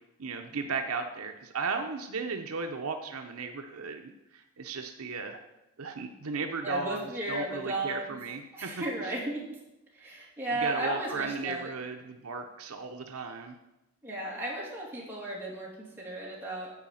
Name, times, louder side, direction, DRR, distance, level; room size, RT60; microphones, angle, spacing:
voice 1, 0.2-5.4 5.8-9.1 10.5-13.6, right 4 dB, 70° right, 5 dB, 0.7 m, -35 dB
voice 2, 6.6-8.1 8.5-9.5 9.9-11.7 14.0-16.7, right 2 dB, 10° right, -5 dB, 2.6 m, -35 dB
9.4 x 5.0 x 7.5 m, 0.95 s
head